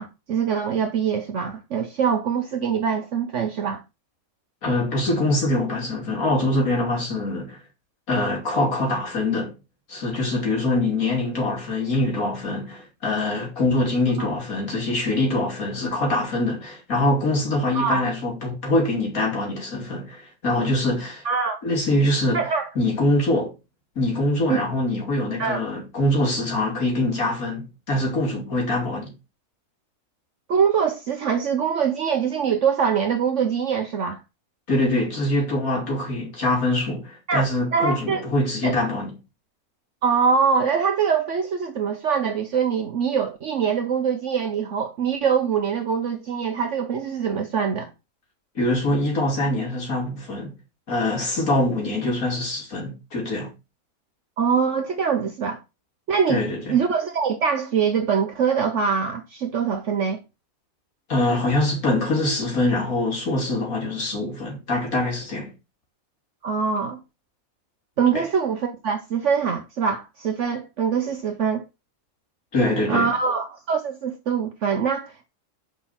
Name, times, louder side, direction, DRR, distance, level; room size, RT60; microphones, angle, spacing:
voice 1, 0.0-3.8 14.2-14.3 17.7-18.0 21.2-21.6 22.3-22.7 24.5-24.6 25.4-25.6 30.5-34.2 37.3-38.3 38.6-38.8 40.0-47.9 54.4-55.6 56.1-56.4 56.7-60.2 66.4-67.0 68.0-71.6 72.9-75.3, right 6 dB, 60° right, 1.1 m, -23 dB
voice 2, 4.6-7.6 8.1-9.5 9.9-21.2 21.6-22.4 22.8-23.5 24.0-29.1 34.7-39.1 48.6-50.5 50.9-53.5 56.3-56.8 61.1-65.5 68.1-68.2 72.5-73.1, left 1 dB, 75° left, 3.5 m, -24 dB
6.5 x 5.2 x 5.7 m
omnidirectional pair, 1.5 m